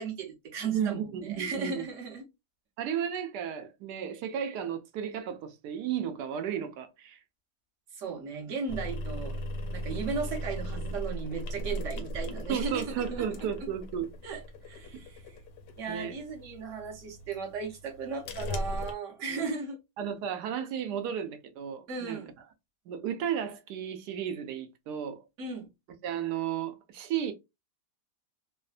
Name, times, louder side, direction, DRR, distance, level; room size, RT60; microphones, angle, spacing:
voice 1, 0.0-2.3 7.9-9.4 9.7-13.3 14.2-15.2 15.8-19.8 21.9-22.3 25.4-25.7, right 5 dB, 55° right, 1.1 m, -36 dB
voice 2, 0.7-1.9 2.8-7.2 12.5-14.1 15.9-16.1 19.3-19.5 20.0-22.2 22.9-25.2 26.0-27.3, right 8 dB, 80° right, 1.1 m, -33 dB
sound 1, 8.7-18.9, equal, 90° left, 1.2 m, -38 dB
3.1 x 2.1 x 2.4 m
omnidirectional pair, 1.8 m